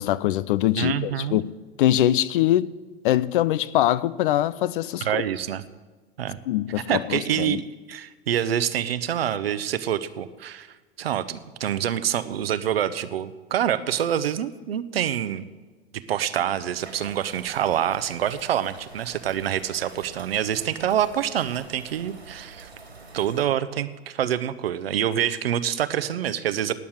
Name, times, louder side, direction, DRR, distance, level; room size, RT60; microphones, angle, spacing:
voice 1, 0.0-1.5 1.8-2.7 3.0-5.2 6.5-7.6, left 13 dB, 55° left, 0.6 m, -23 dB
voice 2, 0.8-1.4 5.0-5.7 6.2-6.4 6.9-15.5 16.1-22.7 23.1-26.7, right 10 dB, 70° right, 1.0 m, -26 dB
sound 1, 16.7-23.5, right 3 dB, 85° right, 3.3 m, -46 dB
18.0 x 7.1 x 9.0 m
figure-of-eight pair, 90°, 31 cm